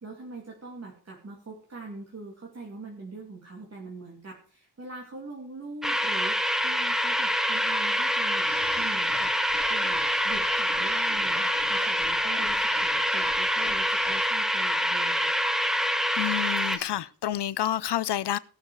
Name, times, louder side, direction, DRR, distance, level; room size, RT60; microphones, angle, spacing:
voice 1, 0.0-9.3 9.7-15.4, right 3 dB, 35° right, 2.5 m, -43 dB
sound 1, 5.8-16.8, equal, ahead, 0.9 m, -26 dB
sound 2, 8.4-14.3, left 3 dB, 25° left, 4.0 m, -46 dB
voice 2, 16.2-18.4, left 12 dB, 75° left, 0.6 m, -29 dB
18.5 x 6.5 x 4.6 m
wide cardioid pair, 180°, 42 cm